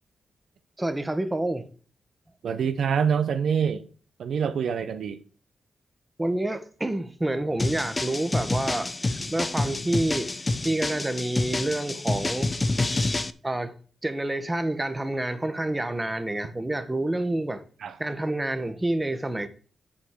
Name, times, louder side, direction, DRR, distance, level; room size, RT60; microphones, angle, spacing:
voice 1, 0.8-1.7 6.2-8.9 9.3-10.3 10.6-12.5 13.4-13.7 14.0-17.6 18.0-19.5, right 1 dB, 20° right, 1.4 m, -28 dB
voice 2, 2.4-3.8 4.2-5.2 17.8-18.0, right 7 dB, 75° right, 0.8 m, -25 dB
sound 1, 7.6-13.3, left 2 dB, 30° left, 0.8 m, -28 dB
7.3 x 5.3 x 6.7 m
supercardioid pair, 55°, 0 cm